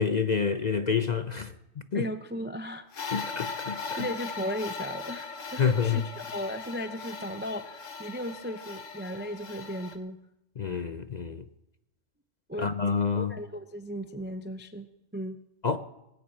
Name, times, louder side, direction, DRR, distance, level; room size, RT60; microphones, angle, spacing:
voice 1, 0.0-2.0 3.1-4.1 5.6-6.1 10.6-11.4 12.6-13.3 15.6-15.8, left 6 dB, 45° left, 0.6 m, -28 dB
voice 2, 1.9-2.8 3.5-3.6 4.0-10.2 12.5-12.7 13.1-14.9 15.1-15.4, equal, 20° right, 0.3 m, -36 dB
sound 1, 2.9-10.0, left 5 dB, 70° left, 1.6 m, -39 dB
19.0 x 7.2 x 8.7 m
omnidirectional pair, 1.4 m